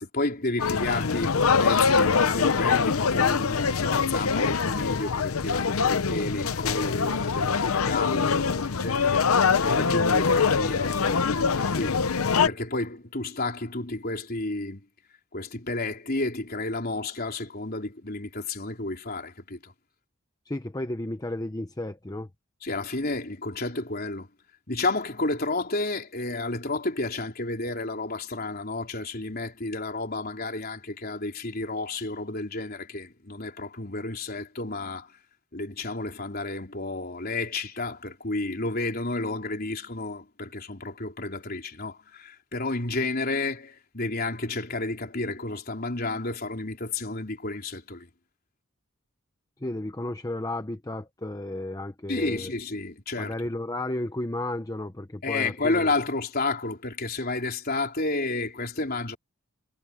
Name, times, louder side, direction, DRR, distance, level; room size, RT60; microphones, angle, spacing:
voice 1, 0.0-9.2 9.6-12.0 12.4-14.8 15.3-19.7 22.6-24.3 24.7-35.1 35.5-48.1 52.1-53.5 55.2-59.2, left 2 dB, 45° left, 3.9 m, -31 dB
sound 1, 0.6-12.5, left 5 dB, 80° left, 0.7 m, -24 dB
voice 2, 20.5-22.3 49.6-52.5 53.2-55.9, left 1 dB, 15° left, 0.8 m, -33 dB
head